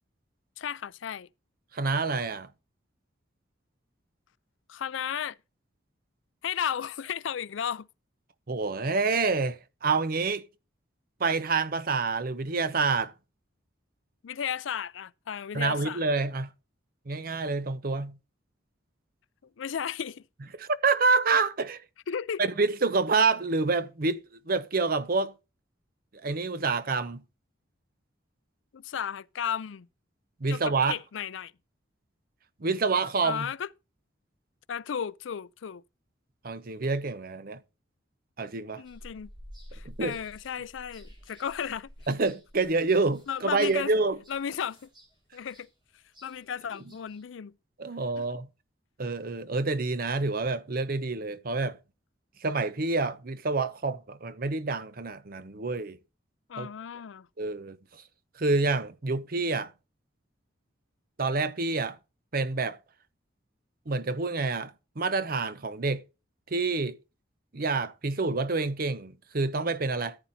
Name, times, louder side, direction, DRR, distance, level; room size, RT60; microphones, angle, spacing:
voice 1, 0.6-1.3 4.7-5.4 6.4-7.9 14.2-16.0 19.6-20.2 22.1-22.4 28.7-29.9 30.5-31.5 33.2-33.7 34.7-35.8 38.8-39.3 39.7-41.9 43.3-43.9 44.3-44.9 45.3-45.7 46.2-47.5 48.2-48.3 56.5-57.3, left 8 dB, 80° left, 0.4 m, -34 dB
voice 2, 1.7-2.5 8.5-10.5 11.2-13.1 15.5-16.5 17.1-18.2 20.6-21.8 22.4-25.3 26.2-27.2 30.4-31.0 32.6-33.5 36.4-37.6 38.4-38.8 39.8-40.2 42.1-44.2 47.8-48.5 49.0-51.8 52.4-56.0 56.6-56.7 57.4-58.0 58.4-59.7 61.2-62.0 62.3-62.8 63.9-66.0 66.5-67.0 67.5-70.2, right 3 dB, 50° right, 0.8 m, -27 dB
sound 1, 38.8-47.2, equal, 25° right, 5.7 m, -52 dB
14.0 x 9.0 x 2.7 m
head